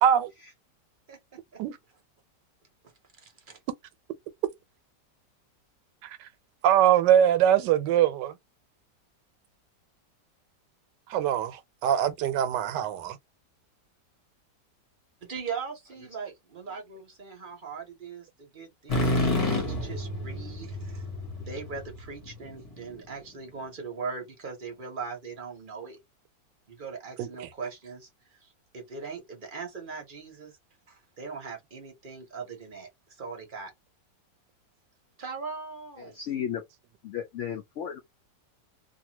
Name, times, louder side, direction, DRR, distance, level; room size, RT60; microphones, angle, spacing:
voice 1, 0.0-0.3 1.6-1.8 6.0-6.3 6.6-8.3 11.1-13.2 27.2-27.5, right 10 dB, 85° right, 1.2 m, -23 dB
voice 2, 1.1-1.6 3.2-3.6 15.2-21.1 21.4-26.0 26.7-30.6 30.9-32.9 33.2-33.7 35.2-36.2, right 5 dB, 40° right, 0.8 m, -40 dB
sound 1, 18.9-22.7, left 2 dB, 30° left, 0.7 m, -29 dB
voice 3, 36.0-36.6 37.0-38.0, left 9 dB, 80° left, 0.6 m, -34 dB
2.8 x 2.3 x 2.8 m
omnidirectional pair, 1.9 m